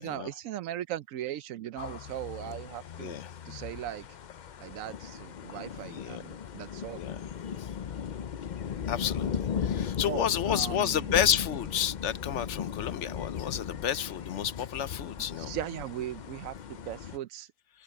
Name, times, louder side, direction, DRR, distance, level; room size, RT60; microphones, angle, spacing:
voice 1, 0.0-3.2 3.5-4.1 4.6-7.0 9.8-11.2 15.2-17.5, right 12 dB, 80° right, 1.0 m, -38 dB
sound 1, 1.8-17.2, left 7 dB, 50° left, 0.5 m, -37 dB
voice 2, 3.0-3.3 5.8-6.2 7.0-7.2 7.6-7.7 8.9-9.3 9.6-15.5, left 9 dB, 65° left, 1.0 m, -30 dB
open air
omnidirectional pair, 1.4 m